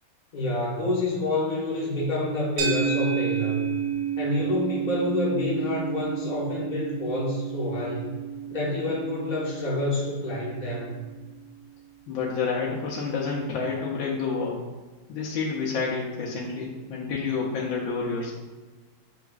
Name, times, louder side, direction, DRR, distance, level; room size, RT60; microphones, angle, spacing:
voice 1, 0.3-3.6 4.2-8.2 8.5-11.0, left 1 dB, 35° left, -5 dB, 0.7 m, -28 dB
sound 1, 2.6-11.0, right 8 dB, 70° right, 1.3 m, -31 dB
voice 2, 12.1-14.6 15.1-18.3, left 4 dB, 75° left, -4 dB, 1.4 m, -29 dB
6.8 x 2.4 x 2.3 m, 1.3 s
omnidirectional pair, 2.2 m